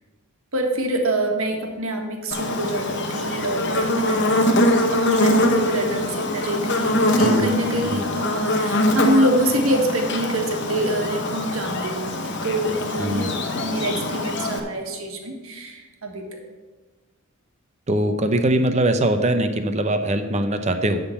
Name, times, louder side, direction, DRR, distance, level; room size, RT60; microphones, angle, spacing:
voice 1, 0.5-13.3 13.6-16.2, right 1 dB, 65° right, 2 dB, 1.5 m, -25 dB
Buzz, 2.3-14.6, left 1 dB, 50° left, 0.9 m, -23 dB
voice 2, 7.2-7.6 7.8-8.0 13.0-13.3 17.9-21.0, right 1 dB, 30° right, 7 dB, 0.7 m, -22 dB
11.0 x 3.8 x 7.1 m, 1.3 s
head